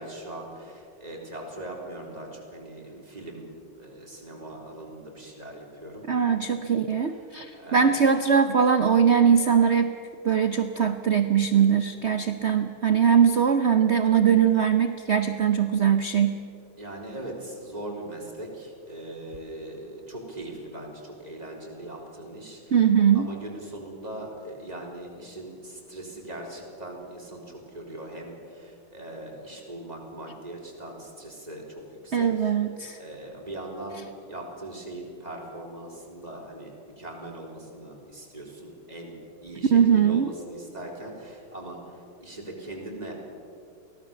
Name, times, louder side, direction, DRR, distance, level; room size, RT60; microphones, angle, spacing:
voice 1, 0.0-6.0 7.0-7.1 7.5-8.0 16.8-22.8 23.1-32.5 33.0-43.1, right 1 dB, 20° right, -1 dB, 3.9 m, -40 dB
voice 2, 6.1-10.0 10.2-16.4 22.7-23.3 32.1-33.0 39.7-40.3, right 7 dB, 60° right, 8 dB, 0.7 m, -21 dB
23.5 x 17.5 x 7.1 m, 2.5 s
omnidirectional pair, 2.2 m